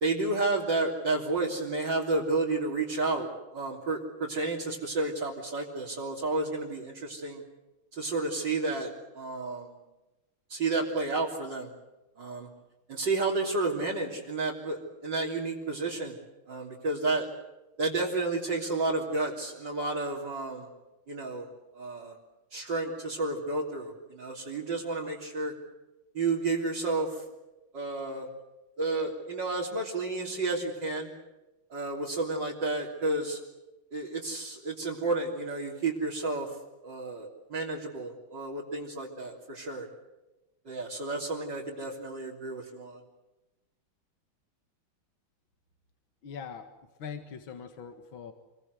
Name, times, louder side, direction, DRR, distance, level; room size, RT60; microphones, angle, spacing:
voice 1, 0.0-7.4 7.9-9.8 10.5-11.7 12.2-12.5 12.9-16.2 16.5-17.3 17.8-20.7 21.1-21.5 21.7-22.2 22.5-25.5 26.1-27.2 27.7-28.3 28.8-31.1 31.7-33.4 33.9-36.6 36.8-39.9 40.7-43.0, right 3 dB, 55° right, -4 dB, 4.0 m, -31 dB
voice 2, 46.2-48.3, left 7 dB, 70° left, 7 dB, 2.4 m, -42 dB
28.0 x 23.0 x 8.2 m, 1.0 s
omnidirectional pair, 2.3 m